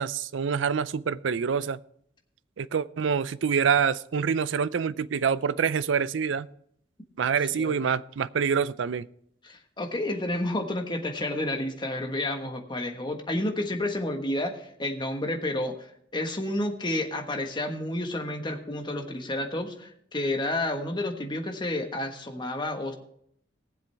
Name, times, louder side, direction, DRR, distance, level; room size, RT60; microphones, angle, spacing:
voice 1, 0.0-1.8 2.6-6.5 7.2-9.1, right 6 dB, 80° right, 0.4 m, -26 dB
voice 2, 7.5-7.9 9.4-22.9, left 1 dB, 25° left, 1.4 m, -30 dB
19.0 x 7.6 x 3.4 m
head